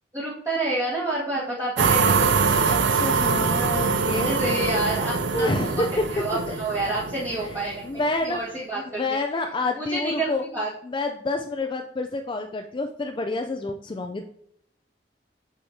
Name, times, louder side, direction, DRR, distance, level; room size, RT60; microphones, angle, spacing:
voice 1, 0.1-2.3 4.2-5.7 6.1-7.8 8.2-9.2 9.7-10.7, right 2 dB, 20° right, -9 dB, 1.5 m, -28 dB
sound 1, 1.8-8.0, right 5 dB, 70° right, 0.6 m, -24 dB
voice 2, 2.7-4.3 5.3-6.6 7.4-8.6 8.9-10.4 10.8-14.2, left 2 dB, 25° left, 4 dB, 0.4 m, -28 dB
6.4 x 6.3 x 2.7 m, 0.70 s
head